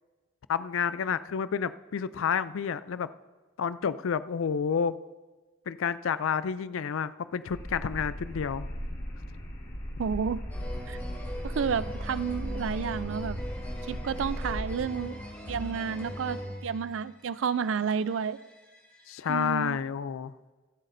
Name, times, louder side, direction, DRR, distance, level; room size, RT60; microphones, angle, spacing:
voice 1, 0.5-3.1 3.6-5.0 5.7-8.7 19.1-20.3, left 7 dB, 90° left, 15 dB, 0.4 m, -30 dB
sound 1, 7.5-14.8, equal, 60° left, 3.9 m, -37 dB
voice 2, 10.0-10.4 10.9-11.0 11.4-13.4 13.9-15.2 15.5-18.4 19.3-19.8, right 6 dB, 75° right, 16 dB, 0.4 m, -31 dB
sound 2, 10.5-17.0 17.9-19.1 19.4-19.5, equal, 10° left, 1.8 m, -39 dB
24.5 x 8.3 x 2.6 m, 1.3 s
head